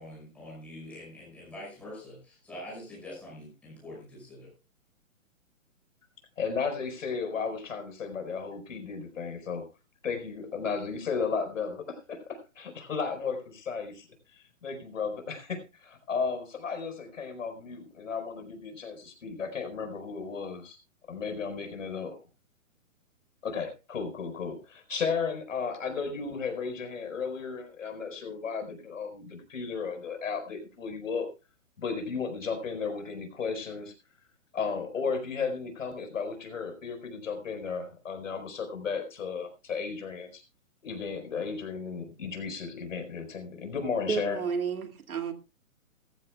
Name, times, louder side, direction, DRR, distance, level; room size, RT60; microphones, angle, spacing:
voice 1, 0.0-4.5, left 1 dB, 5° left, 5.6 m, -44 dB
voice 2, 6.4-9.6 10.0-14.1 14.4-20.8 21.1-22.1 23.4-31.3 31.8-33.9 34.5-40.4 40.8-44.4, left 5 dB, 65° left, 4.5 m, -34 dB
voice 3, 44.1-45.3, right 6 dB, 85° right, 2.3 m, -31 dB
19.0 x 14.0 x 2.3 m
hypercardioid pair, 170°, 42 cm